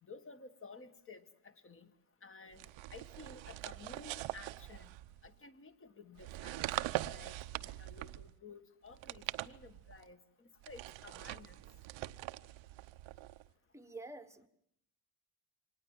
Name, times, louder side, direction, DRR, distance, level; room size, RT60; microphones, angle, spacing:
voice 1, 0.0-1.9 2.2-4.9 5.2-11.6, left 4 dB, 30° left, 10 dB, 1.7 m, -54 dB
sound 1, 2.5-5.3 6.2-8.4 8.9-10.1 10.6-13.5, right 16 dB, 85° right, 0.9 m, -43 dB
voice 2, 13.7-14.5, right 2 dB, 5° right, 11 dB, 1.3 m, -48 dB
25.0 x 19.0 x 7.4 m, 0.74 s
cardioid pair, 150°, 45 cm